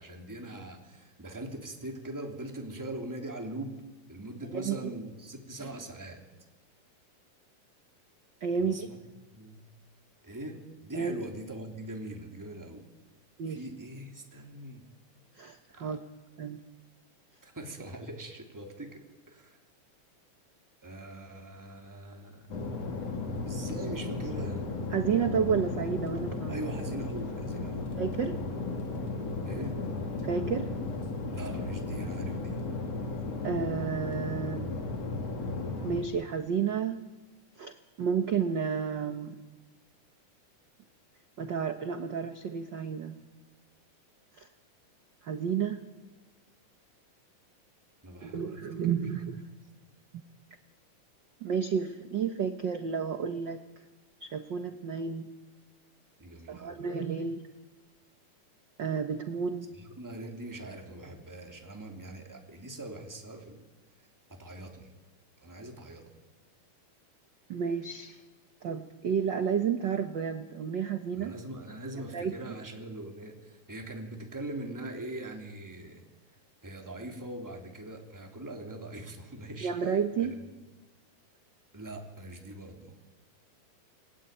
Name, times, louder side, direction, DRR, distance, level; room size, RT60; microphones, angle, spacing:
voice 1, 0.0-3.8 4.1-6.2 8.6-9.0 9.3-9.6 10.2-12.9 13.5-14.9 15.7-16.0 17.4-19.6 20.8-22.5 23.5-24.6 26.5-27.9 29.4-29.8 31.3-32.6 48.0-48.8 56.2-56.9 59.7-63.6 64.0-64.9 65.4-66.1 71.1-76.0 76.6-80.3 81.7-82.9, right 1 dB, 5° right, 3 dB, 2.8 m, -42 dB
voice 2, 8.4-8.9 10.9-11.1 13.4-13.6 15.4-16.0 16.4-16.6 24.9-26.5 28.0-28.4 30.2-30.7 33.4-34.7 35.8-37.0 37.6-39.4 41.4-43.2 44.4-44.5 45.2-45.8 48.2-49.4 51.4-53.6 54.2-55.3 56.5-57.4 58.8-59.7 67.5-68.2 68.6-71.3 72.1-72.3 79.6-80.4, right 6 dB, 75° right, 8 dB, 1.0 m, -31 dB
sound 1, 22.5-36.0, left 3 dB, 55° left, 3.7 m, -35 dB
28.5 x 20.5 x 9.1 m, 1.2 s
omnidirectional pair, 3.7 m